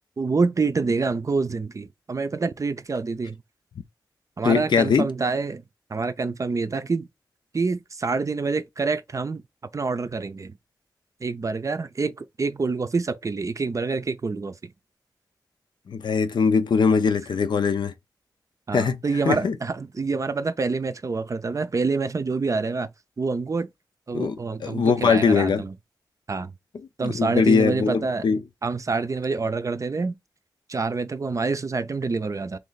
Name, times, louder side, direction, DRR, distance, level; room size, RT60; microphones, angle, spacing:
voice 1, 0.2-3.4 4.4-5.6 5.9-7.1 7.5-9.4 9.7-10.6 11.2-14.7 18.7-22.9 23.2-23.7 24.1-25.7 26.3-26.5 27.0-28.2 28.6-30.2 30.7-32.6, right 4 dB, 45° right, 0.4 m, -26 dB
voice 2, 4.4-5.0 15.9-17.9 18.7-19.0 19.3-19.6 24.1-24.4 24.6-25.6 27.0-28.4, left 5 dB, 85° left, 0.5 m, -21 dB
3.2 x 2.9 x 3.9 m
wide cardioid pair, 80°, 8 cm